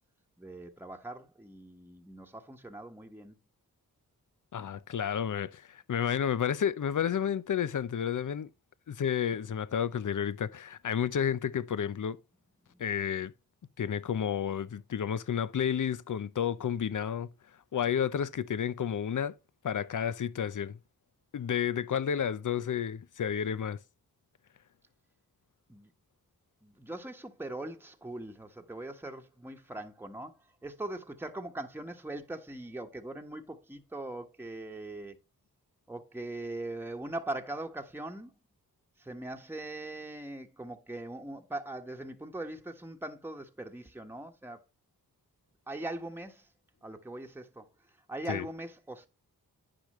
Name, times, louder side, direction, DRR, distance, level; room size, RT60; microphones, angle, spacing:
voice 1, 0.4-3.4 12.7-12.8 25.7-25.9 26.6-35.2 35.9-38.3 39.0-44.6 45.7-46.5 46.8-49.1, right 2 dB, 5° right, 1.3 m, -41 dB
voice 2, 4.5-8.5 8.9-12.2 12.8-13.3 13.8-17.3 17.7-19.4 19.6-20.8 21.3-23.8 48.3-48.5, left 8 dB, 55° left, 0.7 m, -31 dB
10.0 x 4.9 x 3.1 m
cardioid pair, 45°, 38 cm